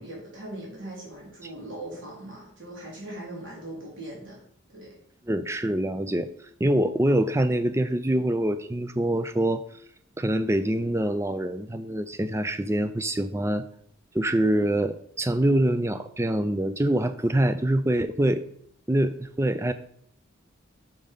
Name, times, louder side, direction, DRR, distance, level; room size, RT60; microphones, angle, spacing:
voice 1, 0.0-4.4 4.7-5.0, right 1 dB, 70° right, -5 dB, 3.4 m, -40 dB
voice 2, 5.3-6.3 6.6-9.6 10.2-13.7 14.1-18.4 18.9-19.7, right 1 dB, 15° right, 11 dB, 0.4 m, -25 dB
6.5 x 5.3 x 5.4 m, 0.64 s
head